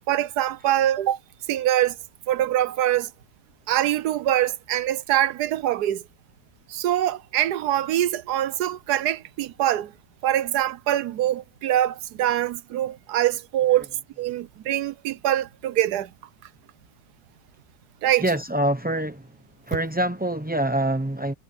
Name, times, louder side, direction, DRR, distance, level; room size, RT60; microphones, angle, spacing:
voice 1, 0.1-1.2 1.5-2.0 2.3-3.1 3.7-6.0 6.7-9.9 10.2-13.9 14.2-16.1 18.0-18.2, right 12 dB, 80° right, 1.3 m, -24 dB
voice 2, 18.2-19.4 19.7-21.3, right 1 dB, 15° right, 0.4 m, -25 dB
omnidirectional pair, 1.7 m